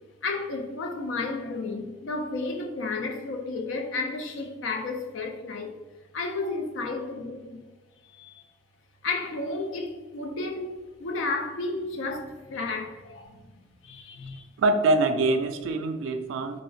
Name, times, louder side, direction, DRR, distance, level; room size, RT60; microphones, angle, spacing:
voice 1, 0.2-5.7 6.1-7.6 8.0-8.4 9.0-13.5 13.8-14.5, left 3 dB, 80° left, 0.4 m, -32 dB
voice 2, 14.6-16.6, right 2 dB, 85° right, 0.3 m, -24 dB
2.4 x 2.0 x 3.7 m
head